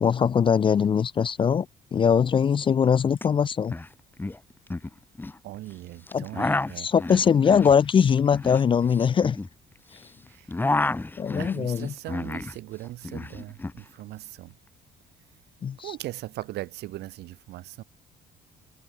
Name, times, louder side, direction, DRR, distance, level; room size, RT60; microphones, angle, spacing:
voice 1, 0.0-1.7 1.9-3.7 6.1-6.3 6.8-9.4 11.2-11.9 15.6-16.0, left 7 dB, 30° left, 0.5 m, -21 dB
sound 1, 3.2-3.3 3.5-3.9 4.2-5.4 6.1-10.0 10.3-12.6 12.8-13.8, left 2 dB, 10° left, 1.3 m, -30 dB
voice 2, 5.4-6.9 10.3-10.5 11.4-14.5 15.8-17.8, right 16 dB, 75° right, 2.4 m, -39 dB
cardioid pair, 110°, 17 cm